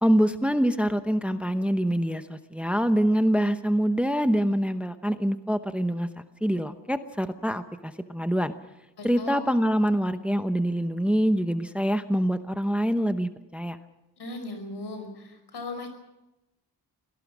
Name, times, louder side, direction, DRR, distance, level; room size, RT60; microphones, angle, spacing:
voice 1, 0.0-6.1 6.4-8.5 9.0-13.8, equal, 5° right, 9 dB, 0.8 m, -25 dB
voice 2, 9.0-9.4 14.2-15.9, left 2 dB, 75° left, 7 dB, 5.3 m, -37 dB
24.5 x 18.0 x 6.2 m, 0.96 s
wide cardioid pair, 115°, 40 cm